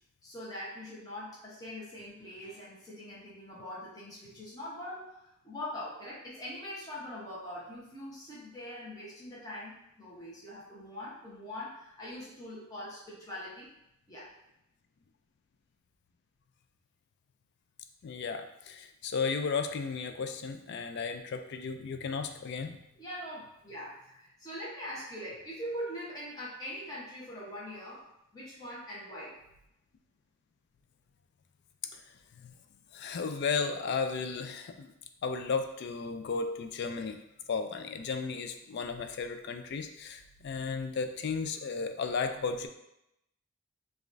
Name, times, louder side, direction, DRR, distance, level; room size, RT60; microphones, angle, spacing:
voice 1, 0.2-13.7 14.1-14.3 22.9-28.1 28.3-29.4, equal, 15° left, -7 dB, 0.8 m, -42 dB
voice 2, 18.0-22.8 32.4-32.5 32.9-34.9 35.2-37.2 37.5-42.7, left 5 dB, 50° left, 7 dB, 0.3 m, -34 dB
4.9 x 2.4 x 2.5 m, 0.83 s
head